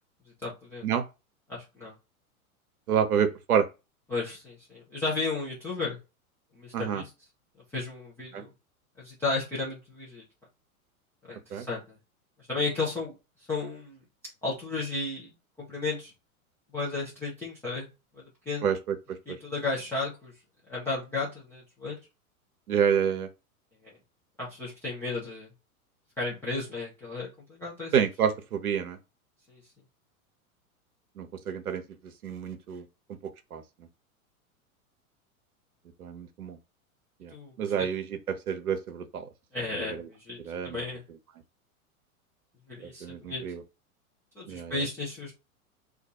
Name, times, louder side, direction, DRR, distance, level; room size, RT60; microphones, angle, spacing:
voice 1, 0.4-0.9 1.5-1.9 4.1-6.0 6.5-7.1 7.7-8.5 9.0-10.2 11.3-11.8 12.5-13.1 13.5-14.0 14.4-15.3 15.6-16.1 16.7-17.9 18.1-18.7 19.3-20.3 20.7-22.0 24.4-25.5 26.2-27.9 29.5-29.6 37.3-37.9 39.5-40.4 40.6-41.0 42.7-43.4 44.4-45.3, left 3 dB, 5° left, 0.3 m, -33 dB
voice 2, 2.9-3.7 6.7-7.0 8.3-8.4 11.5-11.7 18.6-19.0 19.3-19.4 22.7-23.3 27.9-29.0 31.2-31.8 32.2-32.9 33.5-33.6 36.0-36.6 37.2-37.3 37.6-39.3 39.7-40.1 40.4-40.8 43.0-43.6 44.5-44.8, right 8 dB, 80° right, 0.6 m, -28 dB
2.3 x 2.2 x 2.7 m
figure-of-eight pair, 95°, 44 cm